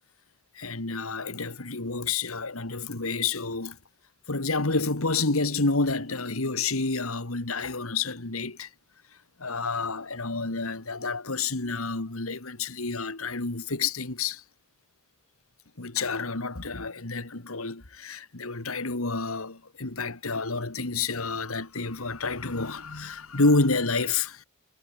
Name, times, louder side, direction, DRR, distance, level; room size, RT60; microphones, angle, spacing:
voice 1, 0.6-3.8 4.3-8.7 9.4-14.4 15.8-24.4, left 3 dB, 85° left, 2.3 m, -29 dB
head